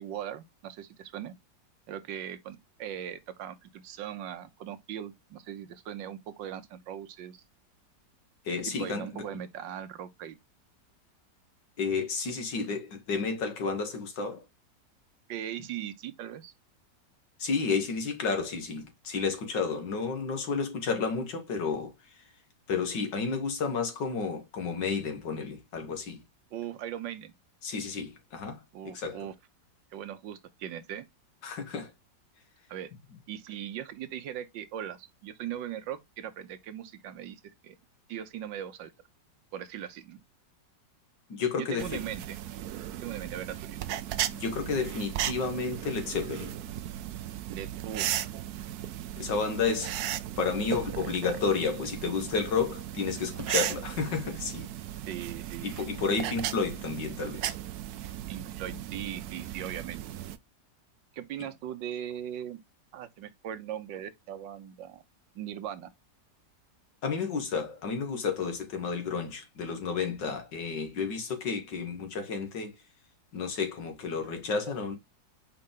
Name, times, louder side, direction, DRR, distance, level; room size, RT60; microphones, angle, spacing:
voice 1, 0.0-1.3 1.9-7.4 8.7-10.4 15.3-16.5 26.5-27.3 28.7-29.3 29.9-31.1 32.7-32.9 33.3-37.8 38.1-38.9 39.5-40.2 41.6-42.4 42.9-43.8 47.5-48.3 55.1-55.8 58.3-60.1 61.1-62.6 62.9-65.0 65.3-65.9, right 10 dB, 85° right, 1.5 m, -39 dB
voice 2, 8.4-9.2 11.8-14.4 17.4-22.2 22.7-26.2 27.6-28.6 28.9-29.3 31.4-31.9 41.3-42.0 44.4-46.5 49.2-50.0 50.4-54.7 55.6-57.5 61.4-61.5 67.0-72.7 73.3-75.0, left 5 dB, 80° left, 2.3 m, -31 dB
sound 1, 41.8-60.4, right 12 dB, 70° right, 1.0 m, -36 dB
5.4 x 4.9 x 3.7 m
omnidirectional pair, 1.9 m